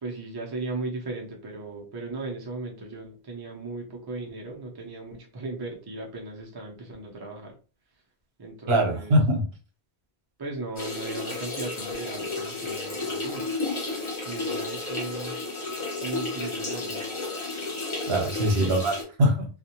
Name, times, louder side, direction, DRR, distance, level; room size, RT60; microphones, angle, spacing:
voice 1, 0.0-7.5 8.4-9.2 10.4-13.5 14.3-15.3 16.0-17.0 18.4-18.8, right 2 dB, 30° right, 0 dB, 0.5 m, -37 dB
voice 2, 8.7-9.5 18.1-19.5, equal, 70° right, 2 dB, 1.0 m, -22 dB
sound 1, 10.8-19.0, left 3 dB, 30° left, 0.7 m, -32 dB
2.4 x 2.2 x 2.8 m, 0.35 s
omnidirectional pair, 1.0 m